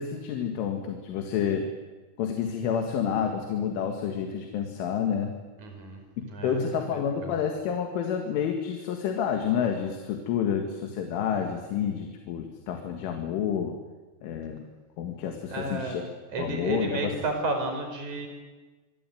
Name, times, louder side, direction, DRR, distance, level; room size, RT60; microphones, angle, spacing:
voice 1, 0.0-1.7 2.2-5.3 6.2-13.8 14.2-14.7 15.0-16.0 16.4-17.1, left 7 dB, 80° left, 4 dB, 4.5 m, -29 dB
voice 2, 5.6-6.0 6.3-6.6 6.9-7.4 15.5-16.0 16.3-18.3, right 2 dB, 40° right, 5 dB, 6.1 m, -32 dB
25.5 x 24.5 x 9.3 m, 1.2 s
omnidirectional pair, 5.5 m